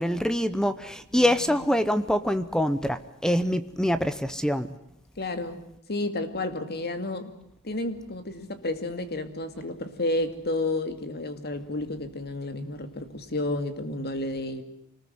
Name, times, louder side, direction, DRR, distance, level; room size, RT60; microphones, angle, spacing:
voice 1, 0.0-4.7, equal, 5° left, 13 dB, 0.9 m, -25 dB
voice 2, 1.1-1.7 5.2-5.6 5.9-7.3 7.6-14.6, left 2 dB, 45° left, 9 dB, 2.4 m, -31 dB
26.0 x 20.0 x 7.9 m, 0.78 s
head